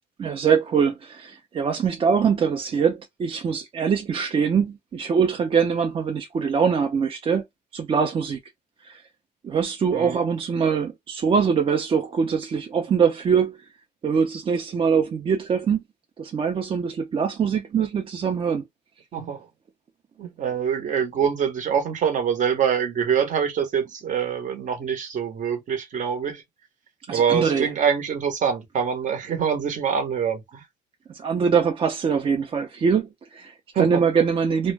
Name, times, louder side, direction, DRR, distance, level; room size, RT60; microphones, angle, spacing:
voice 1, 0.2-7.4 7.7-8.4 8.8-9.0 9.4-13.7 14.0-15.8 16.2-18.6 27.1-27.7 31.1-34.7, right 6 dB, 35° right, 0.4 m, -23 dB
voice 2, 9.9-10.3 19.1-19.5 20.2-26.4 27.1-30.6 33.7-34.0, right 7 dB, 50° right, 0.9 m, -25 dB
2.2 x 2.0 x 3.2 m
cardioid pair, 110°, 17 cm